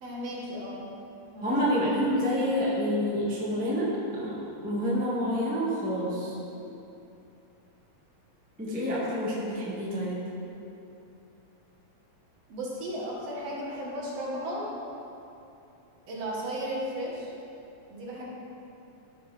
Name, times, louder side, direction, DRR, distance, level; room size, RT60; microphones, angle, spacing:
voice 1, 0.0-0.9 1.3-1.5 12.5-14.7 16.1-17.3 17.9-18.2, equal, 60° right, -5 dB, 2.4 m, -35 dB
voice 2, 1.4-6.3 8.6-10.2 18.2-18.3, equal, 5° right, -7 dB, 0.7 m, -28 dB
12.5 x 6.0 x 3.3 m, 2.8 s
omnidirectional pair, 3.3 m